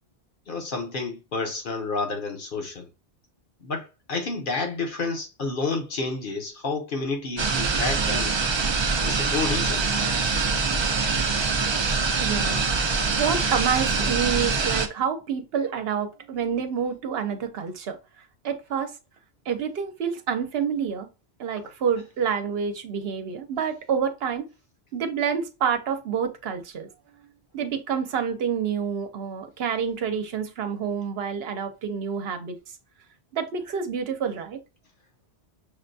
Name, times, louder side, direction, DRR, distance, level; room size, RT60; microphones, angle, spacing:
voice 1, 0.5-2.9 3.6-8.4 9.0-9.9, left 3 dB, 55° left, 1.0 m, -30 dB
sound 1, 7.4-14.9, right 4 dB, 40° right, 0.4 m, -24 dB
voice 2, 12.2-12.7 13.2-18.0 18.4-18.9 19.5-21.1 21.4-24.5 24.9-26.9 27.5-32.6 33.3-34.6, right 7 dB, 70° right, 0.9 m, -28 dB
6.3 x 2.2 x 2.6 m
omnidirectional pair, 1.1 m